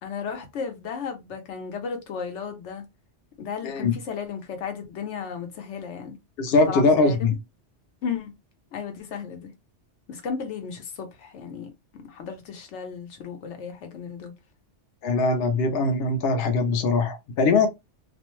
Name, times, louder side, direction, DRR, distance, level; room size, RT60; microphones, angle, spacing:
voice 1, 0.0-2.8 3.4-6.2 6.7-7.4 8.0-8.3 8.7-9.5 10.1-14.3, left 6 dB, 80° left, 1.0 m, -34 dB
voice 2, 3.6-3.9 6.4-7.3 15.0-17.7, left 3 dB, 65° left, 0.8 m, -21 dB
2.5 x 2.1 x 2.9 m
omnidirectional pair, 1.2 m